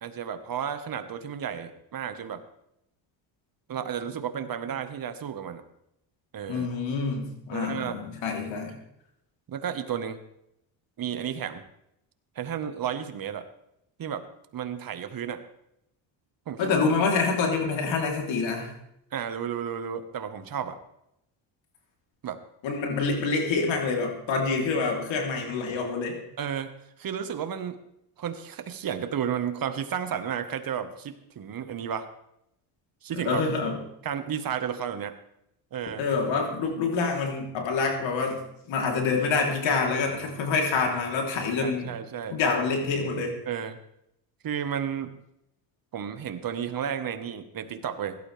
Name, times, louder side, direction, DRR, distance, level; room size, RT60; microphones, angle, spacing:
voice 1, 0.0-2.4 3.7-5.6 6.3-6.7 7.5-8.0 8.5-8.7 9.5-10.2 11.0-11.6 12.3-13.4 14.0-14.3 14.5-15.4 16.5-16.8 19.1-20.8 22.2-22.4 26.4-26.7 27.0-27.8 28.2-32.1 33.0-33.4 34.0-35.2 35.7-36.0 41.6-42.4 43.5-43.8 44.4-45.1 45.9-48.2, right 8 dB, 50° right, 9 dB, 1.4 m, -32 dB
voice 2, 6.5-8.7 16.6-18.7 22.6-26.1 33.1-33.8 36.0-41.9 42.3-43.3, left 4 dB, 75° left, 1 dB, 3.5 m, -27 dB
17.0 x 12.0 x 3.4 m, 0.80 s
cardioid pair, 90°, 46 cm